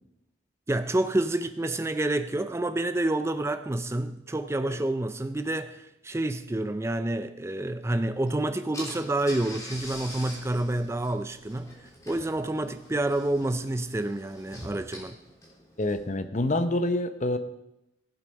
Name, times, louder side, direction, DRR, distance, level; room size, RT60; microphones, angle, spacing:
voice 1, 0.7-11.8 12.1-15.2, right 1 dB, 15° right, 0.4 m, -28 dB
Car / Engine, 8.3-8.4 8.7-16.2, left 1 dB, 15° left, 3.2 m, -44 dB
voice 2, 15.8-17.4, left 1 dB, 35° left, 0.8 m, -27 dB
16.0 x 7.6 x 5.3 m
head